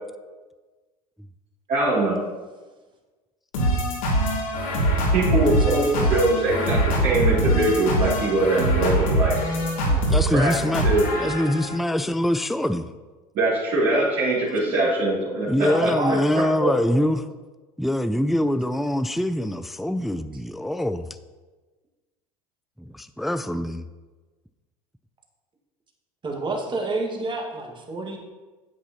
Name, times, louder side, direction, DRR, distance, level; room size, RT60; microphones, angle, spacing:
voice 1, 1.7-2.2 5.1-9.3 10.3-10.5 10.8-11.0 13.3-16.2 16.6-16.7, right 2 dB, 50° right, -10 dB, 2.9 m, -22 dB
sound 1, 3.5-11.8, right 1 dB, 70° left, 3.0 m, -23 dB
voice 2, 5.5-6.0 6.3-6.6 15.6-16.4 26.2-28.2, right 2 dB, 25° right, 2 dB, 1.8 m, -30 dB
voice 3, 9.9-10.9 11.2-12.9 14.5-14.9 15.5-17.3 17.8-21.1 22.8-23.9, left 1 dB, ahead, 12 dB, 0.3 m, -24 dB
9.9 x 8.1 x 2.9 m, 1.3 s
hypercardioid pair, 75°, 19 cm